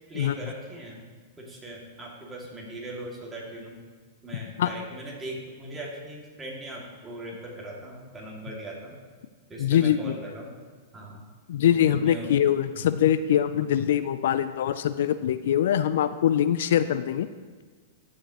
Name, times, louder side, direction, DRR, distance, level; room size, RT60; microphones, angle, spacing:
voice 1, 0.1-1.1 1.4-3.8 4.2-9.0 9.5-10.5 10.9-11.2 11.6-12.3 12.6-13.0 13.6-14.0, right 1 dB, 15° right, -3 dB, 2.1 m, -40 dB
voice 2, 9.6-10.1 11.5-17.3, left 10 dB, 70° left, 13 dB, 0.3 m, -23 dB
15.0 x 5.0 x 2.9 m, 1.5 s
hypercardioid pair, 120°, 0 cm